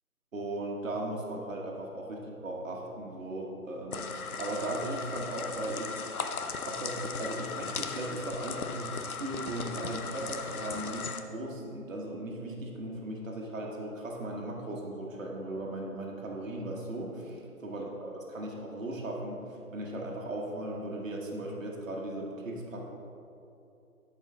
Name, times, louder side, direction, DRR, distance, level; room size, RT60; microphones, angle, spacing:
voice 1, 0.3-6.1 6.6-22.8, right 1 dB, 60° right, -1 dB, 1.3 m, -37 dB
sound 1, 3.9-11.2, left 5 dB, 75° left, 0.7 m, -37 dB
11.0 x 4.8 x 3.7 m, 2.8 s
figure-of-eight pair, 165°, 44 cm